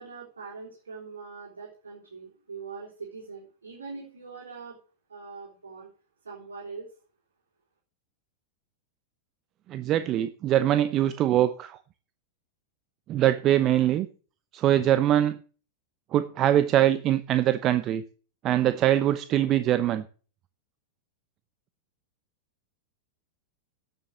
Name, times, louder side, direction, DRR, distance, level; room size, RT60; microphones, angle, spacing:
voice 1, 0.0-4.8 5.1-5.9 6.2-6.9, right 4 dB, 80° right, -4 dB, 4.0 m, -42 dB
voice 2, 9.7-11.8 13.1-14.1 14.5-15.4 16.1-18.0 18.4-20.0, right 12 dB, 35° right, 12 dB, 0.7 m, -23 dB
11.0 x 7.3 x 6.6 m, 0.38 s
figure-of-eight pair, 95°, 0 cm